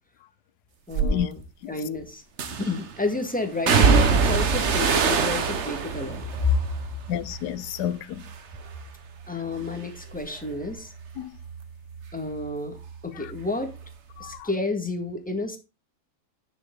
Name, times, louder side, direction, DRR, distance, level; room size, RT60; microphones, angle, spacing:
voice 1, 0.9-1.4 1.7-2.2 2.6-6.5 9.3-10.9 12.1-12.8 13.0-13.7 14.2-15.6, left 3 dB, 5° left, 1.5 m, -30 dB
sound 1, 0.9-1.2 2.4-2.9 3.7-7.9 8.2-8.8 9.2-12.5 12.8-13.9 14.2-14.3, right 5 dB, 50° right, 1.2 m, -25 dB
voice 2, 7.1-8.2 11.2-11.3 14.2-14.5, left 10 dB, 80° left, 1.2 m, -30 dB
10.5 x 6.4 x 3.8 m
omnidirectional pair, 1.8 m